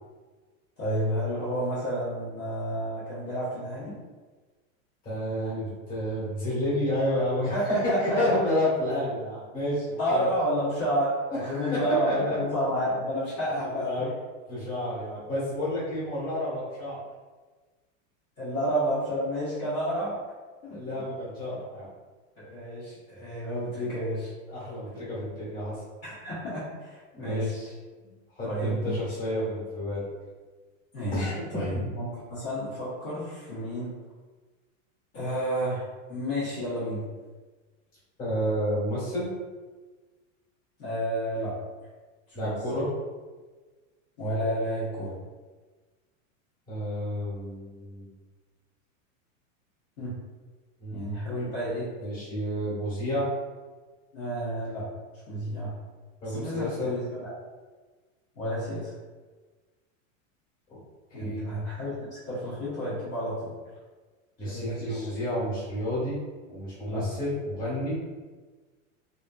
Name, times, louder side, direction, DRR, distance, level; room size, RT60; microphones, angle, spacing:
voice 1, 0.8-4.0 7.5-8.4 10.0-14.1 18.4-20.2 20.6-20.8 22.4-24.3 26.0-27.5 28.4-29.2 30.9-31.3 31.5-33.9 35.1-37.0 40.8-41.5 42.4-42.5 44.2-45.1 50.0-50.2 50.9-51.9 54.1-54.8 55.3-55.7 56.2-57.3 58.4-58.9 61.1-63.5 64.4-65.1 66.9-67.0, equal, 40° left, -12 dB, 1.1 m, -30 dB
voice 2, 5.0-10.3 11.3-12.4 13.6-14.1 14.5-17.0 20.7-21.9 24.5-25.8 27.1-27.7 28.3-30.0 31.1-31.9 38.2-39.3 42.3-42.9 46.7-48.1 50.8-51.0 52.0-53.3 56.2-56.9 61.1-61.4 64.4-66.2 66.5-68.0, left 1 dB, 20° left, -9 dB, 1.5 m, -30 dB
3.4 x 2.7 x 2.3 m, 1.3 s
supercardioid pair, 160°, 40 cm